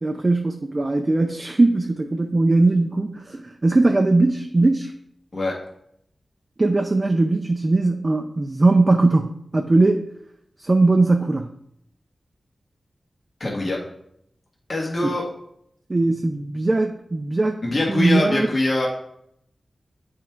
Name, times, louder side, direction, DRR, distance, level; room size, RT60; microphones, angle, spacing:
voice 1, 0.0-4.9 6.6-10.1 10.6-11.5 15.0-15.1 15.9-17.6 17.9-18.5, right 2 dB, 40° right, 5 dB, 0.5 m, -20 dB
voice 2, 13.4-13.8 14.7-15.2 17.6-18.9, left 2 dB, 50° left, -2 dB, 1.6 m, -23 dB
7.2 x 3.6 x 4.5 m, 0.74 s
wide cardioid pair, 65°, 0 cm